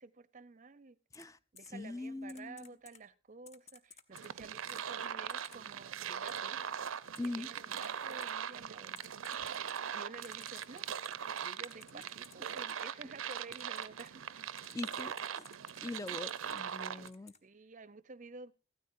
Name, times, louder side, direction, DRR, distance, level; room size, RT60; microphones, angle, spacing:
voice 1, 0.0-1.0 1.5-6.6 7.2-9.0 9.9-10.9 11.4-14.2 16.8-17.1 17.4-18.5, right 4 dB, 40° right, 0.6 m, -52 dB
Typing, 1.1-1.2 1.6-1.7 2.3-3.0 3.5-4.3 4.7-4.8 5.3-5.6 6.3-6.4 7.2-7.3 7.8-7.9 8.2-8.3 9.0-9.8 10.2-12.3 12.7-12.8 13.3-14.1 14.6-15.8 16.1-16.6 17.1-17.4, left 6 dB, 35° left, 1.0 m, -56 dB
voice 2, 1.7-2.7 7.2-7.5 14.7-15.4 15.8-17.3, left 2 dB, 15° left, 0.5 m, -42 dB
sound 1, 4.1-17.1, right 8 dB, 85° right, 0.6 m, -41 dB
15.5 x 13.0 x 2.6 m
head